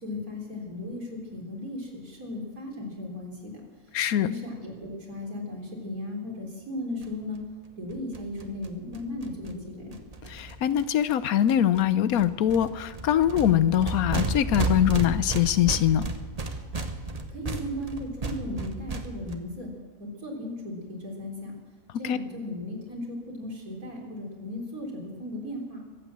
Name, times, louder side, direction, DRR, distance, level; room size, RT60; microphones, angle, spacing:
voice 1, 0.0-3.3 4.2-7.4 7.8-10.0 17.3-19.7 20.0-21.5 22.0-25.9, left 1 dB, 75° right, -2 dB, 4.2 m, -36 dB
voice 2, 3.9-4.3 10.3-16.1 22.0-22.2, left 11 dB, 85° left, 15 dB, 1.2 m, -23 dB
sound 1, 7.0-7.1 7.3-7.4 7.6-7.7 7.9-11.1 11.5-11.8 12.1-19.4, right 2 dB, 30° right, 1.1 m, -33 dB
23.0 x 8.4 x 7.4 m, 1.4 s
omnidirectional pair, 1.5 m